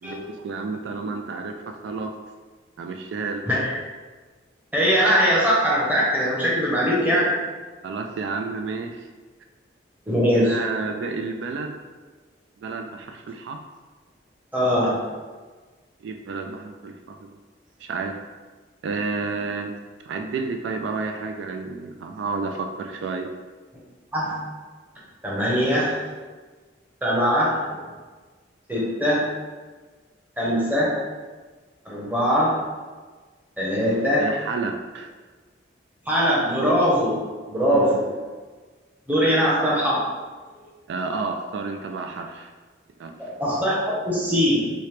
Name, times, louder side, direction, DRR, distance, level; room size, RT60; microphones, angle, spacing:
voice 1, 0.0-2.1 2.8-3.4 6.7-6.9 7.8-9.1 10.3-11.8 12.6-13.6 16.0-17.4 17.8-18.2 18.8-19.7 20.0-23.3 34.2-35.1 37.7-38.1 39.2-39.4 40.9-42.5 43.0-43.1, right 4 dB, 80° right, 5 dB, 0.3 m, -31 dB
voice 2, 4.7-7.3 10.1-10.5 14.5-15.0 24.1-24.3 25.2-26.0 27.0-27.8 28.7-29.3 30.4-30.9 31.9-32.6 33.6-34.3 36.1-38.1 39.1-40.0 43.2-44.7, equal, 10° right, -7 dB, 0.8 m, -21 dB
3.1 x 2.8 x 3.2 m, 1.4 s
head